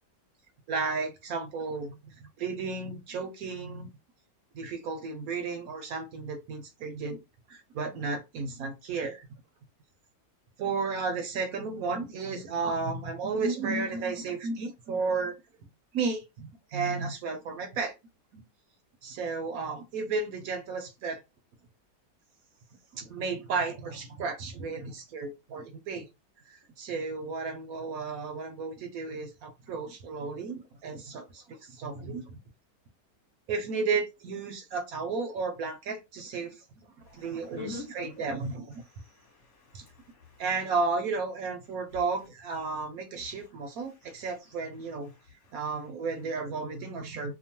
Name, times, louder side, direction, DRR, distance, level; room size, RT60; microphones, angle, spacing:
voice 1, 0.7-2.0 2.4-3.9 4.5-7.2 7.5-9.3 10.6-15.3 15.9-17.9 18.3-18.4 19.0-21.2 22.9-26.1 26.5-32.2 33.5-36.6 37.1-38.7 39.7-39.8 40.4-45.1 45.5-47.3, right 4 dB, 70° right, 0.9 m, -33 dB
voice 2, 37.6-37.9 39.0-40.4 45.4-45.6, left 5 dB, 45° left, 1.3 m, -45 dB
2.9 x 2.1 x 2.8 m
omnidirectional pair, 1.8 m